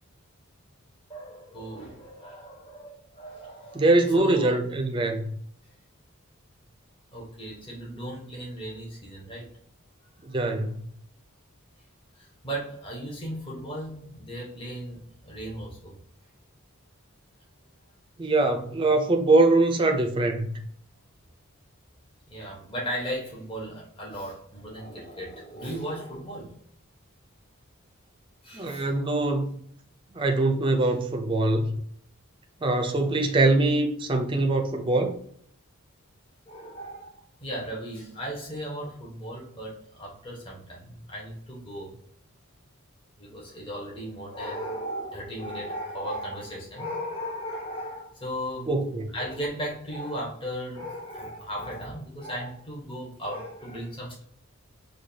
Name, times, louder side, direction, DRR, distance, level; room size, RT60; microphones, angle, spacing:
voice 1, 1.1-4.6 7.1-9.5 10.3-10.4 12.2-16.0 22.3-26.5 28.4-28.9 36.5-42.0 43.2-48.7 49.1-54.2, equal, 25° left, 1.1 m, -36 dB
voice 2, 3.7-5.3 10.2-10.9 18.2-20.7 28.5-29.6 30.1-31.8 32.6-35.2 48.7-49.1, right 2 dB, 25° right, 0.4 m, -23 dB
4.8 x 2.3 x 2.7 m
head